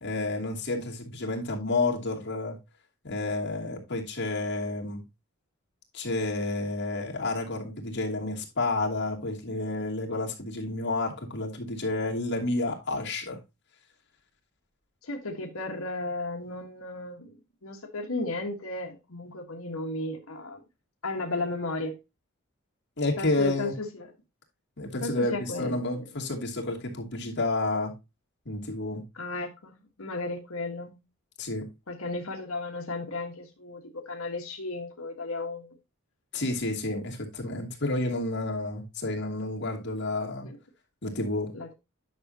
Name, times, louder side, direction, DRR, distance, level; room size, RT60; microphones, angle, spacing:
voice 1, 0.0-2.6 3.0-5.0 5.9-13.4 23.0-23.7 24.8-27.9 28.5-29.0 31.4-31.7 36.3-40.5 41.0-41.5, left 2 dB, 55° left, 2.7 m, -30 dB
voice 2, 15.0-20.6 21.0-22.0 23.2-24.1 25.0-26.1 29.1-31.0 31.9-35.8 40.4-40.6 41.5-41.7, left 2 dB, 80° left, 1.5 m, -34 dB
10.0 x 6.4 x 2.8 m
head